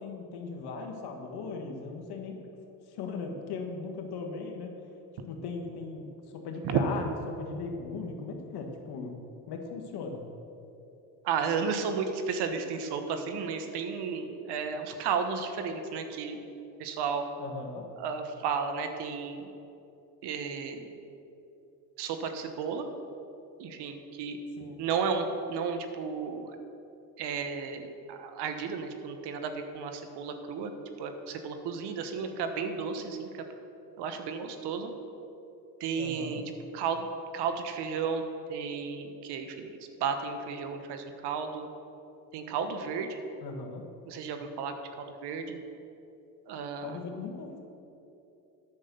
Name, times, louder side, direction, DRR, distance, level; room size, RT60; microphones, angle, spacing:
voice 1, 0.0-2.4 2.9-4.7 5.2-9.1 9.4-10.2 17.4-17.8 24.6-24.8 36.0-36.4 43.4-43.8 46.8-47.6, left 4 dB, 60° left, 2 dB, 1.7 m, -38 dB
voice 2, 11.2-16.4 16.8-17.2 18.0-19.5 20.2-21.0 22.0-22.8 23.6-24.4 24.8-26.6 27.2-30.7 31.0-33.4 34.0-34.9 35.8-36.4 36.7-37.1 37.3-38.2 38.5-41.7 42.3-43.2 44.1-45.6 46.5-47.0, right 6 dB, 65° right, 7 dB, 1.2 m, -33 dB
9.5 x 6.3 x 6.8 m, 2.8 s
supercardioid pair, 85°, 43 cm